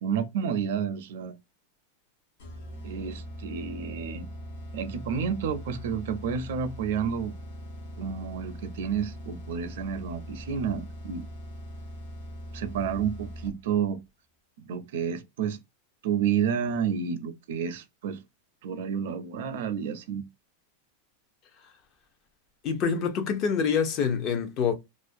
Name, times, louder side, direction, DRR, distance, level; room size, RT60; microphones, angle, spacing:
voice 1, 0.0-1.3 2.8-4.3 4.7-7.3 8.0-11.3 12.5-14.0 14.6-15.6 16.0-18.2 18.6-20.2, right 7 dB, 70° right, 0.4 m, -30 dB
sound 1, 2.4-13.8, equal, 65° left, 0.9 m, -41 dB
voice 2, 22.6-24.7, left 6 dB, 35° left, 0.6 m, -26 dB
2.5 x 2.1 x 2.5 m
supercardioid pair, 150°, 0 cm